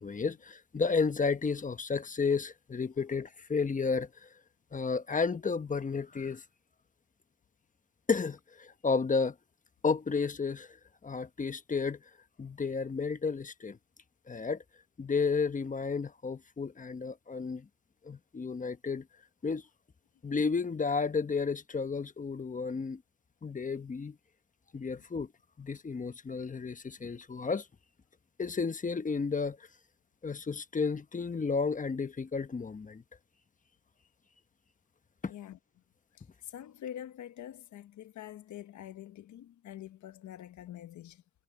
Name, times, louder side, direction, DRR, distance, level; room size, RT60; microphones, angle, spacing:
voice 1, 0.0-4.3 4.7-6.4 8.1-9.3 9.8-10.8 11.0-12.0 12.4-13.8 14.3-14.6 15.0-17.7 18.0-19.0 19.4-19.6 20.2-23.0 23.4-24.2 24.7-25.3 25.6-27.7 28.4-29.6 30.2-33.0 35.2-35.3, left 4 dB, 25° left, 1.2 m, -32 dB
voice 2, 35.3-35.6 36.1-41.2, left 11 dB, 70° left, 1.4 m, -46 dB
cardioid pair, 90°, 30 cm